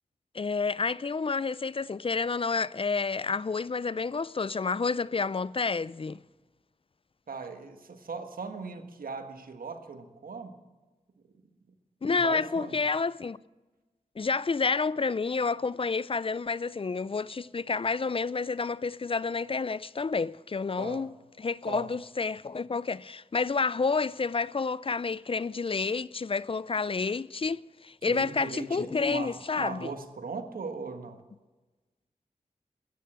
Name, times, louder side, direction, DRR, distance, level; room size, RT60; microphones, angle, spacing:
voice 1, 0.3-6.2 12.0-13.4 14.2-29.9, left 4 dB, 40° left, 0.4 m, -29 dB
voice 2, 7.3-10.6 12.0-12.8 20.8-21.1 21.6-21.9 28.1-31.2, right 4 dB, 85° right, 1.4 m, -39 dB
13.5 x 10.0 x 10.0 m
cardioid pair, 40°, 14 cm